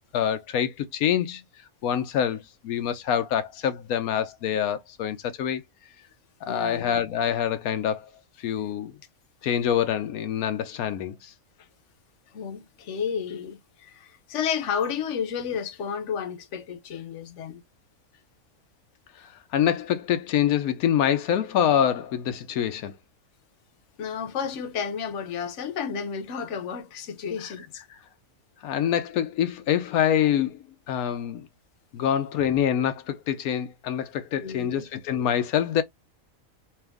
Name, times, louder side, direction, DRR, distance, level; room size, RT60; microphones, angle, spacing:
voice 1, 0.1-1.4 1.8-5.6 6.4-8.1 8.4-8.9 9.4-11.3 19.5-22.9 28.6-31.5 31.9-35.8, left 9 dB, 85° left, 1.1 m, -25 dB
voice 2, 6.5-6.8 12.3-17.6 24.0-27.8 34.4-34.9, left 7 dB, 60° left, 1.1 m, -32 dB
4.4 x 2.4 x 3.4 m
omnidirectional pair, 1.5 m